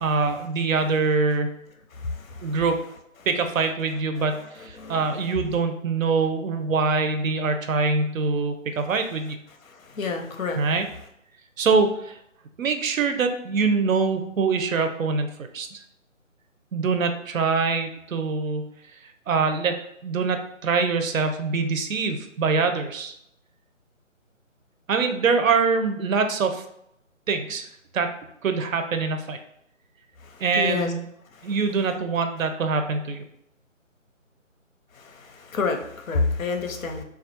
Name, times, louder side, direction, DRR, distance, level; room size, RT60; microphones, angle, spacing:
voice 1, 0.0-1.5 2.4-2.8 3.3-9.4 10.6-10.8 11.6-12.2 12.6-15.8 16.7-18.7 19.3-19.8 20.0-23.1 24.9-26.6 27.3-27.6 27.9-28.1 28.4-29.4 30.4-31.1 31.4-33.2, right 4 dB, 80° right, 7 dB, 0.5 m, -24 dB
voice 2, 2.0-2.5 4.8-5.0 9.9-10.6 30.6-30.9 35.0-37.0, left 4 dB, 90° left, 4 dB, 0.6 m, -28 dB
2.2 x 2.0 x 2.7 m, 0.76 s
figure-of-eight pair, 165°, 40 cm